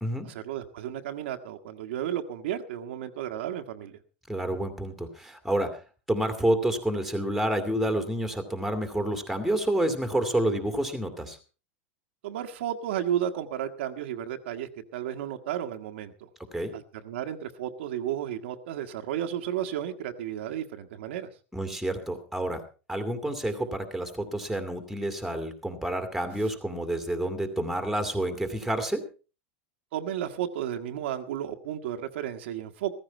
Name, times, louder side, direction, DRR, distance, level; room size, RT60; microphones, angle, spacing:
voice 1, 0.2-4.0 12.2-16.3 16.7-21.3 29.9-32.9, right 10 dB, 80° right, 5 dB, 1.5 m, -33 dB
voice 2, 4.3-5.8 6.1-11.4 16.5-16.7 21.5-22.6 22.9-29.0, right 1 dB, ahead, 7 dB, 2.3 m, -29 dB
15.0 x 14.5 x 4.5 m, 0.35 s
supercardioid pair, 145°, 6 cm